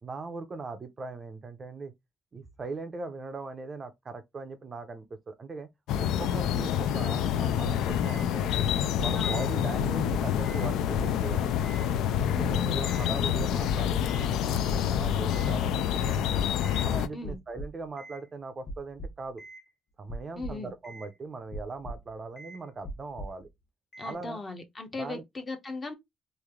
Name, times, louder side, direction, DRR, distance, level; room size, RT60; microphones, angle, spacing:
voice 1, 0.0-1.9 2.3-5.7 6.0-8.6 9.0-11.8 12.4-16.4 16.8-19.4 20.0-23.5 24.0-24.4 25.0-25.2, right 3 dB, 25° right, 0.5 m, -40 dB
sound 1, 5.9-17.1, left 10 dB, 85° left, 0.3 m, -27 dB
sound 2, 7.6-8.3 8.6-9.5 9.8-10.7 11.0-11.9 12.2-13.1 13.3-14.3 14.7-15.5 16.0-16.8 17.2-18.2 18.7-19.6 20.1-21.1 21.5-22.1 22.4-22.6 22.8-23.4 23.9-24.1, right 1 dB, 40° left, 1.1 m, -41 dB
voice 2, 9.1-9.4 12.3-12.8 17.1-17.4 20.4-20.7 24.0-25.9, left 3 dB, 25° left, 0.7 m, -38 dB
3.1 x 2.5 x 3.5 m
cardioid pair, 165°, 0 cm